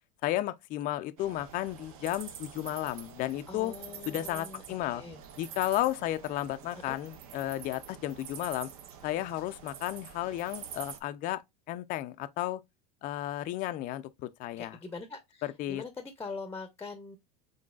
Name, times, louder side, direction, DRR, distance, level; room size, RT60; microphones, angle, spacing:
voice 1, 0.2-3.7 4.1-5.0 5.4-8.7 9.0-11.4 11.7-12.6 13.0-14.8 15.4-15.8, left 14 dB, 45° left, 0.4 m, -33 dB
sound 1, 1.2-11.0, right 8 dB, 75° right, 0.7 m, -47 dB
voice 2, 3.5-4.6 4.9-5.2 6.9-7.0 14.6-17.2, left 4 dB, 15° left, 0.7 m, -43 dB
3.9 x 3.7 x 2.3 m
supercardioid pair, 100°, 19 cm